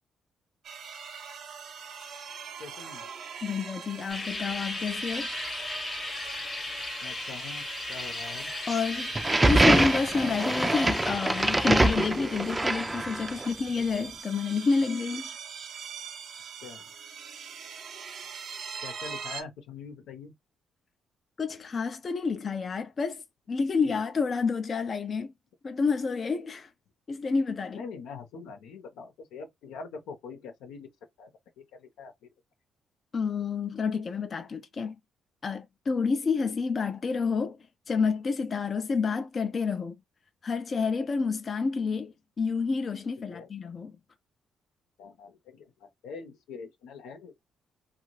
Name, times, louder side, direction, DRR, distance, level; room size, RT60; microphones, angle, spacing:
sound 1, 0.6-19.4, right 6 dB, 65° right, 0.6 m, -42 dB
voice 1, 2.6-3.1 7.0-8.5 16.6-16.8 18.8-20.3 23.8-24.0 27.7-30.9 31.2-31.3 31.7-32.3 43.3-43.5 45.0-47.3, left 5 dB, 90° left, 0.8 m, -44 dB
voice 2, 3.4-5.3 8.7-9.1 9.4-15.3 21.4-25.3 25.6-26.7 27.1-27.9 33.1-34.9 35.4-37.6 37.9-40.0 40.4-44.0, left 5 dB, 40° left, 0.4 m, -29 dB
sound 2, 4.1-11.9, left 3 dB, 25° left, 0.9 m, -36 dB
sound 3, 9.1-13.5, right 2 dB, 15° right, 0.5 m, -24 dB
2.7 x 2.4 x 3.0 m
cardioid pair, 90°, 0 cm